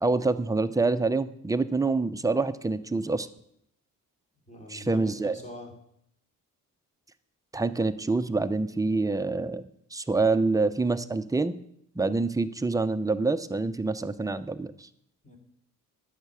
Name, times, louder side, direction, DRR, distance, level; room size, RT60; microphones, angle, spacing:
voice 1, 0.0-3.3 4.7-5.3 7.5-9.6 9.9-11.5 12.0-14.9, right 3 dB, 10° right, 10 dB, 0.6 m, -26 dB
voice 2, 4.5-5.7 15.2-15.4, left 1 dB, 20° left, 1 dB, 3.0 m, -44 dB
11.0 x 6.6 x 7.0 m, 0.73 s
cardioid pair, 90°, 33 cm